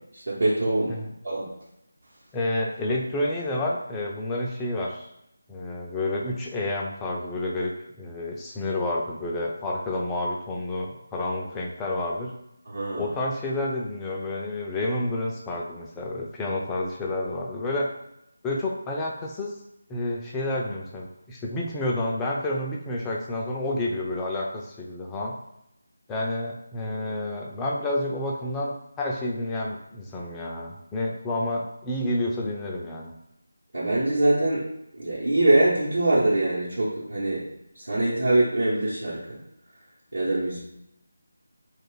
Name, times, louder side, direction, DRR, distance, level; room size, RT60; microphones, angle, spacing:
voice 1, 0.1-1.0 1.2-1.5 12.7-13.1 33.7-34.6 35.0-37.4 37.8-39.4 40.1-40.6, right 2 dB, 70° right, -9 dB, 1.0 m, -23 dB
voice 2, 2.3-5.1 5.5-7.7 8.0-12.3 13.0-17.9 18.4-19.5 19.9-25.3 26.1-33.1, left 1 dB, 10° left, -2 dB, 0.4 m, -29 dB
2.5 x 2.4 x 3.8 m, 0.81 s
figure-of-eight pair, 160°, 0 cm